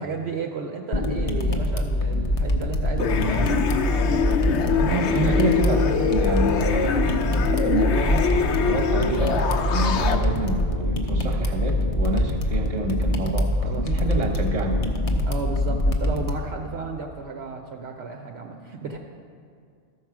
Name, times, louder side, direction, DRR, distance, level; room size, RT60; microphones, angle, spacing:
voice 1, 0.0-5.1 13.6-14.1 15.2-19.0, right 4 dB, 65° right, 2 dB, 0.8 m, -34 dB
sound 1, 0.9-16.3, left 1 dB, 40° left, 0.6 m, -24 dB
sound 2, 3.0-10.2, left 6 dB, 70° left, 0.9 m, -24 dB
voice 2, 4.7-8.3 8.6-14.8, right 2 dB, 30° right, 2 dB, 1.0 m, -28 dB
13.0 x 4.7 x 6.0 m, 2.3 s
omnidirectional pair, 1.2 m